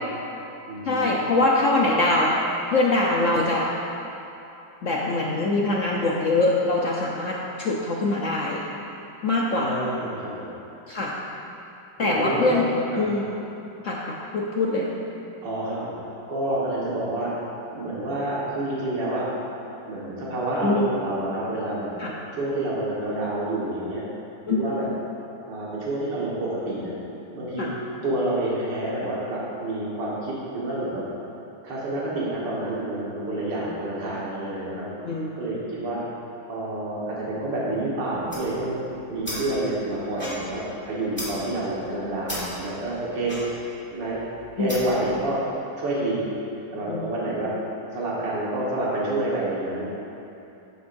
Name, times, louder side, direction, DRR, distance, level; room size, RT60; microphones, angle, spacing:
voice 1, 0.2-1.1 9.6-10.5 12.0-12.6 12.9-13.1 15.4-15.8 16.3-17.3 17.7-19.3 19.8-21.9 22.3-24.0 24.5-24.9 25.5-26.9 27.3-27.7 28.0-31.0 31.6-34.9 35.4-36.0 36.5-38.8 39.1-43.6 43.9-44.2 44.6-45.4 45.8-46.2 46.7-47.5 47.9-49.8, right 1 dB, 70° right, -7 dB, 2.3 m, -28 dB
voice 2, 0.9-2.4 2.7-3.7 4.8-8.6 9.2-9.8 10.9-11.1 12.0-12.7 13.0-13.3 13.8-14.9 20.6-20.9 22.0-22.1 24.5-24.6 27.6-27.7 35.0-35.3 44.6-44.8 46.9-47.1, left 2 dB, 60° left, -3 dB, 0.9 m, -23 dB
sound 1, 38.1-45.1, equal, 5° left, 1.9 m, -37 dB
12.5 x 9.1 x 2.6 m, 2.8 s
omnidirectional pair, 2.0 m